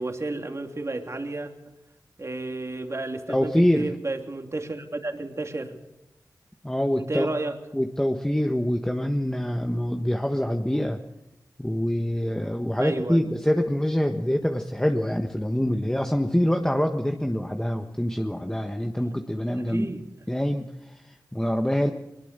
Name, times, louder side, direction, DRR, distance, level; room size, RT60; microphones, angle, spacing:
voice 1, 0.0-1.7 2.2-5.8 7.0-7.6 12.8-13.3 19.5-20.0, right 2 dB, 40° right, 4 dB, 2.9 m, -32 dB
voice 2, 3.3-3.9 6.6-7.3 7.7-11.0 11.6-19.9 20.3-21.9, equal, 10° left, 4 dB, 1.4 m, -25 dB
21.5 x 21.0 x 6.9 m, 0.91 s
cardioid pair, 55°, 7 cm